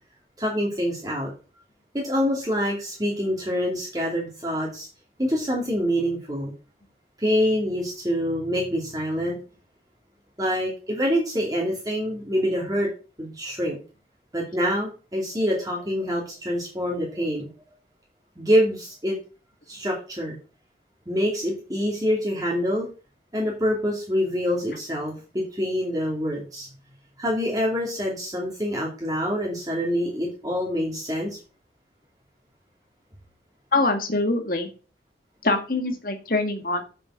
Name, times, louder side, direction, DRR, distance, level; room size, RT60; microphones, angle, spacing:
voice 1, 0.4-1.3 1.9-4.9 5.2-6.5 7.2-9.4 10.4-12.9 13.2-13.8 14.3-17.5 18.4-19.2 19.7-20.4 21.1-22.9 23.3-26.7 27.2-31.4, equal, 20° right, -2 dB, 2.6 m, -26 dB
voice 2, 33.7-34.7 35.4-36.8, left 2 dB, 55° left, 5 dB, 1.9 m, -24 dB
7.0 x 6.9 x 6.4 m, 0.35 s
head